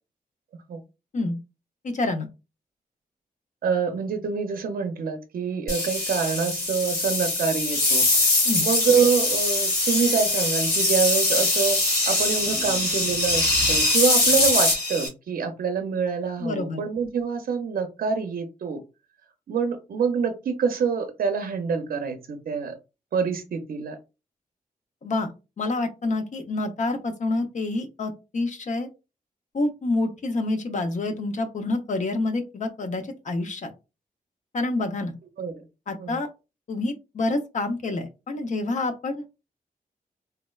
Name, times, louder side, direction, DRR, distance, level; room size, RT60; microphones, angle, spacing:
voice 1, 1.8-2.3 8.4-8.7 16.4-16.8 25.0-25.3 25.6-28.9 29.5-33.7 34.5-35.1 35.9-36.3 36.7-39.3, left 2 dB, 55° left, 6 dB, 0.6 m, -27 dB
voice 2, 3.6-8.0 8.6-11.8 12.1-18.8 19.5-22.7 23.1-24.0 35.4-35.5 36.0-36.2, right 6 dB, 75° right, 7 dB, 0.5 m, -26 dB
sound 1, 5.7-15.1, left 2 dB, 80° left, 1.6 m, -22 dB
3.4 x 2.1 x 2.3 m, 0.28 s
wide cardioid pair, 130°, 15 cm